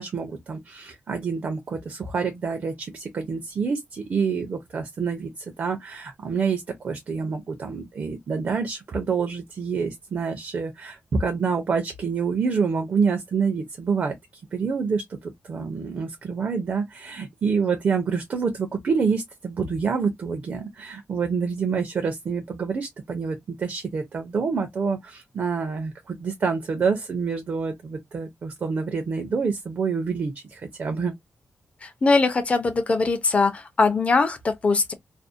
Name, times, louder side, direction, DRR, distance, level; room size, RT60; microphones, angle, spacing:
voice 1, 0.0-14.2 14.5-31.1, right 5 dB, 50° right, 0.5 m, -27 dB
voice 2, 31.8-34.9, left 3 dB, 30° left, 0.5 m, -21 dB
2.5 x 2.0 x 2.5 m
wide cardioid pair, 170°, 4 cm